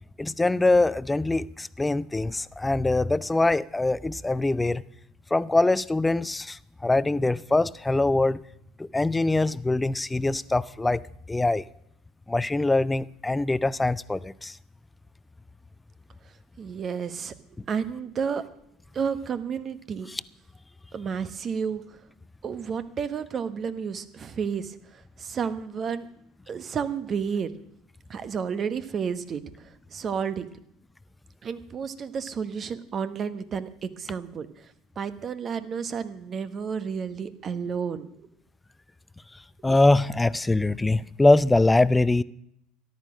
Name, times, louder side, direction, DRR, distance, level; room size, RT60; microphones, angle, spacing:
voice 1, 0.2-4.8 5.3-8.4 8.8-11.0 11.3-11.6 12.3-14.5 20.1-20.2 39.6-42.2, left 2 dB, 15° left, 0.5 m, -23 dB
voice 2, 16.6-17.3 17.7-18.4 18.9-20.1 20.9-21.8 22.4-24.8 25.2-26.1 26.5-27.5 28.1-29.4 29.9-30.5 31.4-34.5 35.0-38.1, right 6 dB, 40° right, 1.1 m, -31 dB
13.5 x 11.0 x 6.3 m
hypercardioid pair, 70°, 0 cm